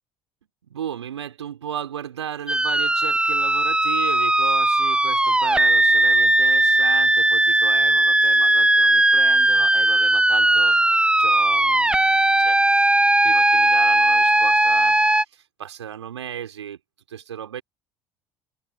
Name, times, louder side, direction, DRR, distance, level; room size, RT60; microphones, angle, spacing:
voice 1, 0.7-10.8 11.2-12.9 13.2-15.0 15.3-16.8 17.1-17.6, right 9 dB, 80° right, 4.7 m, -35 dB
sound 1, 2.5-15.2, right 1 dB, 5° right, 1.1 m, -18 dB
open air
figure-of-eight pair, 60°, 14 cm